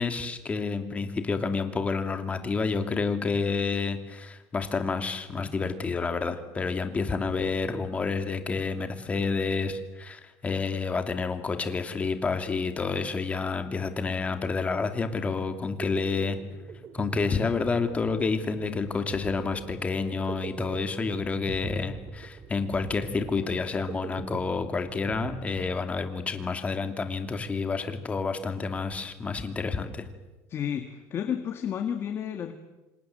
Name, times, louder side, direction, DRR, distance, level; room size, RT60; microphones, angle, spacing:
voice 1, 0.0-16.4 16.9-30.0, left 4 dB, 20° left, 7 dB, 2.6 m, -29 dB
sound 1, 15.8-26.3, right 6 dB, 35° right, 2.3 m, -42 dB
voice 2, 30.5-32.5, left 8 dB, 35° left, 7 dB, 1.9 m, -31 dB
27.0 x 27.0 x 7.8 m, 1.1 s
cardioid pair, 150°, 7 cm